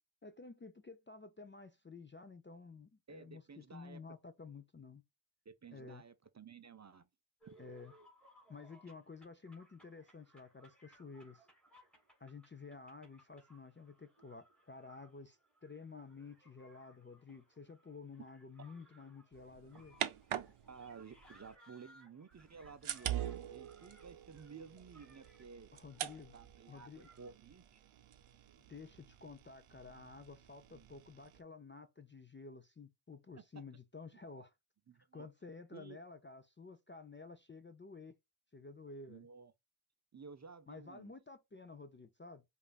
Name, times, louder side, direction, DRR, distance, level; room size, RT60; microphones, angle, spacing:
voice 1, 0.2-5.0 5.7-6.0 7.6-7.9 8.5-11.5 12.2-20.0 25.7-26.3 26.7-27.1 28.7-34.5 35.1-38.1 38.5-39.3 40.7-42.4, left 4 dB, 25° left, 0.3 m, -52 dB
voice 2, 3.1-4.0 5.5-7.1 7.5-7.6 20.7-25.7 26.3-27.8 30.7-30.9 34.9-35.3 35.7-36.0 39.1-39.5 40.1-41.1, right 5 dB, 35° right, 0.4 m, -54 dB
sound 1, 7.4-27.3, right 1 dB, ahead, 1.7 m, -65 dB
sound 2, 19.3-21.6 22.3-31.4, right 11 dB, 75° right, 0.6 m, -45 dB
5.2 x 2.5 x 2.3 m
wide cardioid pair, 115°, 50 cm